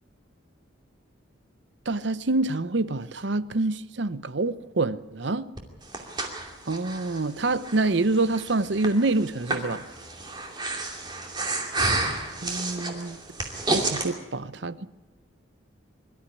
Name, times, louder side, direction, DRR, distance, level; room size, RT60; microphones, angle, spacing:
voice 1, 1.9-5.5 6.7-9.9 12.4-13.2 13.7-14.9, right 2 dB, 65° right, 0.8 m, -26 dB
Breathing, 5.6-14.1, right 2 dB, 20° right, 2.6 m, -31 dB
23.5 x 13.0 x 9.9 m
head